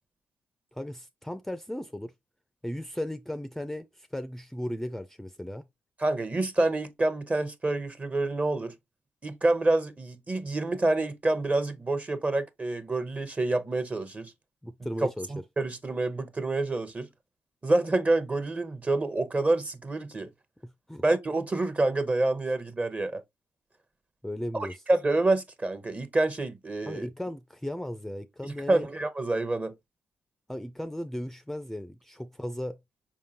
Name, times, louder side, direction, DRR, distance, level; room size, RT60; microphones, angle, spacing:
voice 1, 0.7-2.1 2.6-5.7 14.6-15.3 20.6-21.0 24.2-24.8 26.9-28.9 30.5-32.8, left 1 dB, 5° left, 0.4 m, -36 dB
voice 2, 6.0-8.7 9.2-14.3 15.3-17.1 17.6-20.3 21.0-23.2 24.5-27.1 28.4-29.7, right 2 dB, 30° right, 0.9 m, -27 dB
4.8 x 3.6 x 2.8 m
supercardioid pair, 55°, 5 cm